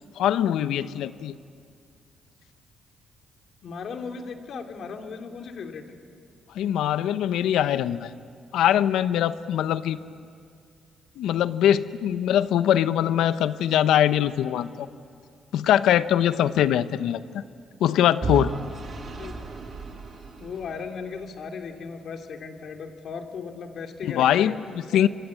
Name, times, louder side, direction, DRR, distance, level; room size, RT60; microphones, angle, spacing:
voice 1, 0.2-1.4 6.5-8.1 8.5-10.0 11.2-14.9 15.5-17.4 17.8-18.5 24.0-25.1, left 11 dB, 85° left, 13 dB, 0.9 m, -22 dB
voice 2, 3.6-5.9 19.2-19.3 20.4-24.6, left 5 dB, 60° left, 4 dB, 2.8 m, -36 dB
Vehicle / Engine, 18.2-21.2, right 4 dB, 45° right, 4.1 m, -34 dB
27.5 x 24.0 x 8.6 m, 2.3 s
cardioid pair, 90°, 0 cm